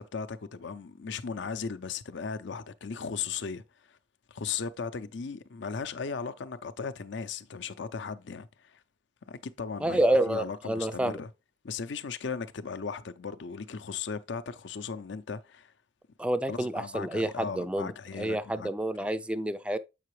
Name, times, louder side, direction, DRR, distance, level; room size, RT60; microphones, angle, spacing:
voice 1, 0.0-3.6 3.9-4.0 4.3-8.8 9.3-11.3 11.6-15.7 16.5-18.7 19.0-19.1, left 5 dB, 65° left, 0.6 m, -37 dB
voice 2, 9.8-11.2 16.2-19.8, right 1 dB, 5° right, 0.3 m, -28 dB
7.5 x 5.7 x 3.1 m
head